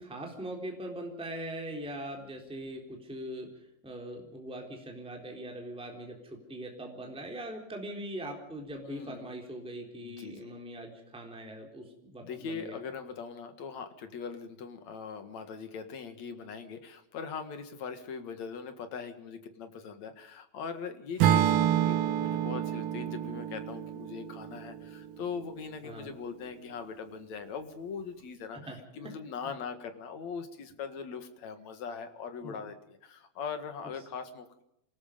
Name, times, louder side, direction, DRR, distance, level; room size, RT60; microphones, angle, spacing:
voice 1, 0.0-12.8 25.8-26.1 28.5-29.1 32.4-32.6, right 1 dB, ahead, 1 dB, 3.4 m, -41 dB
voice 2, 8.8-9.3 10.0-10.5 12.2-34.6, left 6 dB, 55° left, 8 dB, 2.8 m, -41 dB
Acoustic guitar / Strum, 21.2-25.4, right 11 dB, 75° right, 2.9 m, -28 dB
27.5 x 19.0 x 5.3 m, 0.77 s
omnidirectional pair, 4.2 m